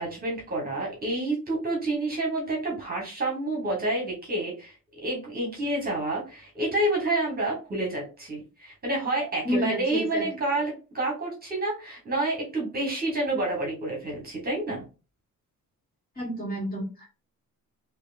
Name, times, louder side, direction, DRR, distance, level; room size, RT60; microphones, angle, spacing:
voice 1, 0.0-4.7 5.0-14.8, right 2 dB, 30° right, -1 dB, 1.3 m, -29 dB
voice 2, 9.4-10.3 16.2-17.1, equal, 25° left, -4 dB, 2.1 m, -30 dB
4.5 x 2.8 x 2.5 m, 0.32 s
wide cardioid pair, 180°, 33 cm